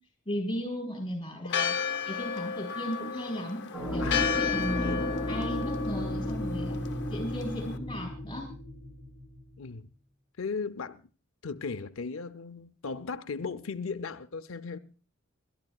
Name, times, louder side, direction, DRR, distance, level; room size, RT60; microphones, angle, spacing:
voice 1, 0.3-1.7 2.1-3.6 3.9-6.8 7.1-8.5, equal, 25° left, 4.1 m, -35 dB
Church bell, 1.5-7.8, left 7 dB, 60° left, 1.0 m, -33 dB
sound 1, 3.7-9.6, left 1 dB, ahead, 2.9 m, -34 dB
voice 2, 4.0-5.0 9.6-9.9 10.4-11.0 11.4-14.8, left 4 dB, 75° left, 0.6 m, -37 dB
29.0 x 12.0 x 2.3 m
head